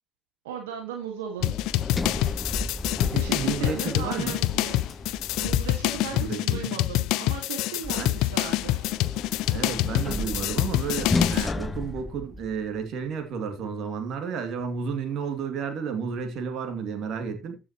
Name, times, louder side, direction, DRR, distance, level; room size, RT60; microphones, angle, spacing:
voice 1, 0.4-1.6 3.1-4.9 5.4-8.8, right 7 dB, 85° right, 1.8 m, -37 dB
sound 1, 1.4-11.5, left 17 dB, 70° left, 0.5 m, -26 dB
Sliding door, 1.4-6.2 7.8-12.8, left 3 dB, 25° left, 1.1 m, -33 dB
voice 2, 3.1-4.4 6.1-6.7 8.0-8.2 9.5-17.6, right 6 dB, 60° right, 2.5 m, -32 dB
14.5 x 6.2 x 3.0 m
hypercardioid pair, 60°, 0 cm